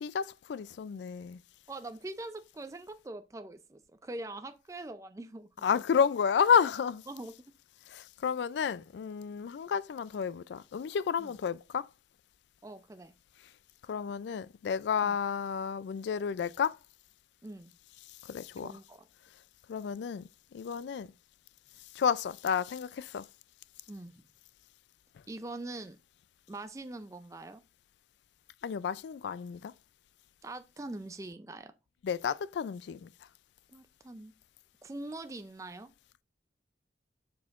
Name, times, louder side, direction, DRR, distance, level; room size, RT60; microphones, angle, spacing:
voice 1, 0.0-1.4 5.6-7.0 7.9-11.9 13.9-16.8 18.2-18.7 19.7-21.1 22.0-23.3 28.6-29.7 32.0-33.1, left 7 dB, 75° left, 0.3 m, -31 dB
voice 2, 1.7-5.6 7.1-7.3 11.2-11.3 12.6-13.1 15.0-15.2 17.4-17.7 18.6-19.1 23.9-24.1 25.3-26.0 26.5-27.6 30.4-31.7 33.7-34.3 34.8-35.9, right 2 dB, 15° right, 0.4 m, -43 dB
7.2 x 6.3 x 2.4 m
head